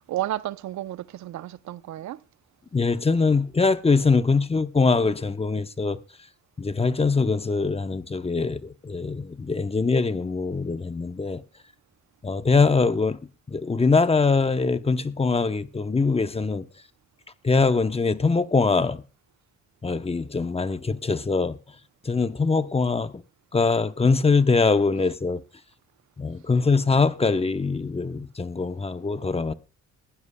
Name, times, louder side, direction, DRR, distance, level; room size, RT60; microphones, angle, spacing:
voice 1, 0.1-2.2, right 13 dB, 70° right, 0.7 m, -32 dB
voice 2, 2.7-6.0 6.6-11.4 12.2-13.2 13.5-16.7 17.4-19.0 19.8-21.6 22.1-23.1 23.5-25.4 26.2-29.5, left 4 dB, 20° left, 0.9 m, -23 dB
21.0 x 15.5 x 2.3 m
cardioid pair, 90°, 30 cm